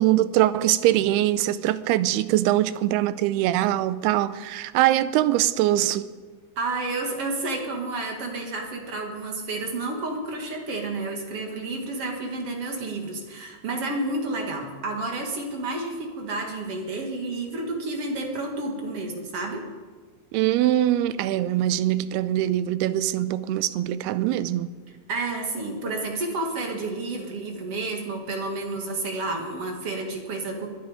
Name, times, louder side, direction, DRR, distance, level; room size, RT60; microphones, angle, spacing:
voice 1, 0.0-6.1 20.3-24.7, right 13 dB, 90° right, 2.6 m, -22 dB
voice 2, 6.6-19.6 25.1-30.7, right 2 dB, 45° right, 2.4 m, -30 dB
22.5 x 10.5 x 5.1 m
omnidirectional pair, 4.5 m